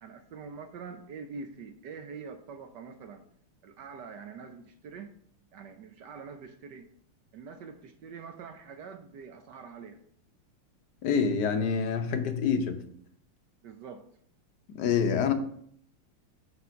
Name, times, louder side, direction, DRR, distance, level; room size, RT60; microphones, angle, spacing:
voice 1, 0.0-3.2 3.6-5.1 5.5-6.9 7.3-10.0 13.6-14.0, right 5 dB, 65° right, 1.2 m, -44 dB
voice 2, 11.0-12.8 14.7-15.3, left 6 dB, 60° left, 1.4 m, -26 dB
8.1 x 4.3 x 5.7 m
omnidirectional pair, 2.3 m